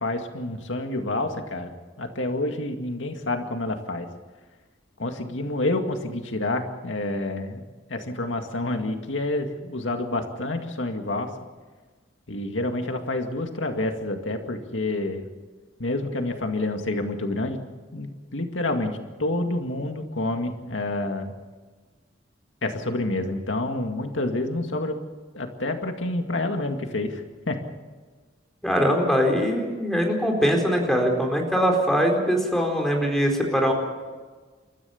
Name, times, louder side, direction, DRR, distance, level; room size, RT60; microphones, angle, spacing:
voice 1, 0.0-4.1 5.0-7.6 7.9-11.3 12.3-15.3 15.8-17.6 17.9-21.3 22.6-25.0 25.3-27.6, left 2 dB, 85° left, 5 dB, 2.2 m, -28 dB
voice 2, 28.6-33.7, equal, ahead, 1 dB, 4.4 m, -22 dB
29.5 x 14.0 x 7.1 m, 1.4 s
head